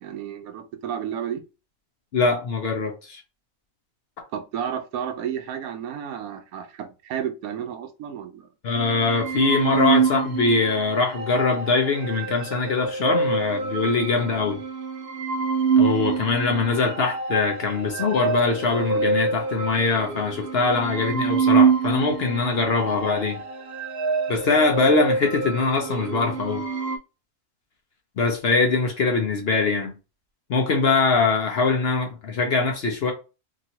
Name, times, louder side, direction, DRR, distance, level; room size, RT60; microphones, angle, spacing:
voice 1, 0.0-1.4 4.3-8.5, right 9 dB, 80° right, 1.0 m, -32 dB
voice 2, 2.1-3.2 8.6-14.6 15.8-23.4 24.3-26.6 28.2-29.9 30.5-33.1, left 4 dB, 55° left, 0.8 m, -22 dB
sound 1, 8.8-27.0, right 5 dB, 65° right, 0.6 m, -26 dB
3.0 x 2.7 x 2.8 m
omnidirectional pair, 1.5 m